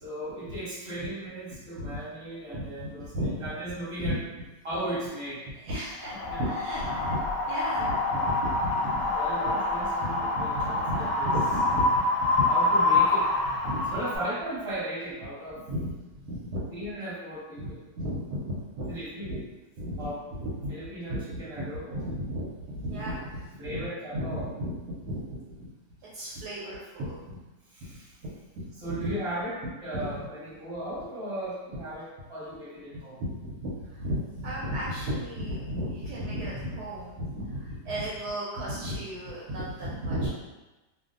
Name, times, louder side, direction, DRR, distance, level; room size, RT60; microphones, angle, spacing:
voice 1, 0.0-4.2 4.6-5.4 6.1-6.4 9.0-11.3 12.5-13.3 13.8-15.6 16.7-17.8 18.9-19.3 20.0-20.2 20.7-22.0 23.6-24.5 27.7-28.1 28.8-33.2, right 1 dB, 20° right, -10 dB, 0.9 m, -36 dB
voice 2, 2.5-3.4 4.0-4.2 5.6-9.1 9.4-9.5 10.0-12.5 13.6-14.0 15.7-16.6 17.6-18.9 19.2-19.4 19.8-20.1 20.4-20.7 21.1-23.9 24.1-25.7 26.1-27.4 27.9-28.0 28.6-29.2 30.0-30.2 33.2-40.3, equal, 70° right, -7 dB, 1.1 m, -34 dB
Wind, 6.1-14.2, left 2 dB, 70° left, 0.9 m, -26 dB
2.5 x 2.4 x 2.4 m, 1.1 s
omnidirectional pair, 1.9 m